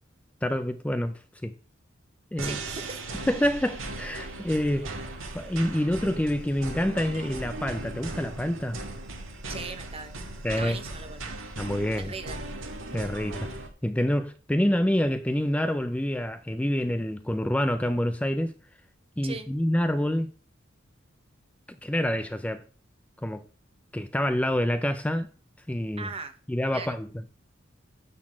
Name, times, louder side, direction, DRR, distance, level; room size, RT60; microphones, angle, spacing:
voice 1, 0.4-1.5 2.3-2.6 3.3-4.9 5.3-8.8 10.4-10.8 11.6-12.1 12.9-13.5 13.8-18.5 19.2-20.3 21.8-22.6 23.2-23.4 23.9-25.3 25.7-26.1 26.5-27.1, left 1 dB, 5° left, 0.4 m, -27 dB
voice 2, 2.4-3.0 9.5-10.1 10.6-11.3 11.9-12.4 19.2-19.5 26.0-26.4 26.7-27.0, right 4 dB, 30° right, 0.8 m, -39 dB
sound 1, 2.4-13.7, right 2 dB, 80° right, 1.8 m, -38 dB
10.5 x 4.0 x 7.3 m
head